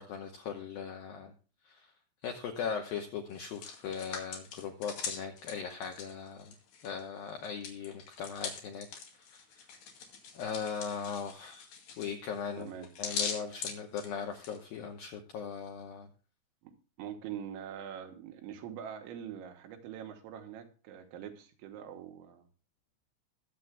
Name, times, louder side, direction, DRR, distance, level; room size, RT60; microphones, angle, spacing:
voice 1, 0.0-1.3 1.7-1.9 2.2-6.5 6.8-8.9 9.3-9.4 10.3-11.6 12.0-12.7 13.0-16.1, left 6 dB, 80° left, 3 dB, 2.1 m, -39 dB
Hands, 3.3-7.0 7.3-14.6, left 6 dB, 65° left, 4.1 m, -41 dB
voice 2, 12.6-12.9 16.6-22.5, right 9 dB, 80° right, 5 dB, 3.4 m, -44 dB
21.5 x 7.8 x 2.2 m, 0.37 s
omnidirectional pair, 5.5 m